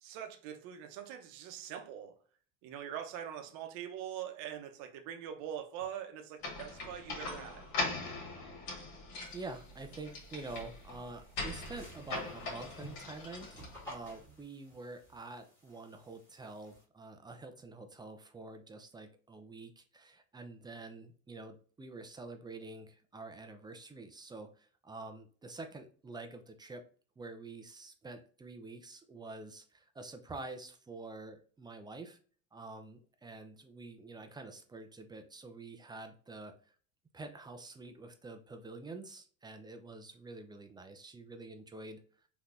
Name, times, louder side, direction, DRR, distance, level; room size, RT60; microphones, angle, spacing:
voice 1, 0.0-2.1 2.6-7.7, right 9 dB, 65° right, 0.8 m, -43 dB
sound 1, 6.4-14.1, left 3 dB, 75° left, 1.6 m, -41 dB
sound 2, 9.2-16.8, equal, 5° left, 1.6 m, -55 dB
voice 2, 9.3-26.8 27.2-32.2 32.5-36.7 37.1-42.0, right 3 dB, 10° right, 0.4 m, -47 dB
3.5 x 2.9 x 2.5 m
hypercardioid pair, 90°, 39 cm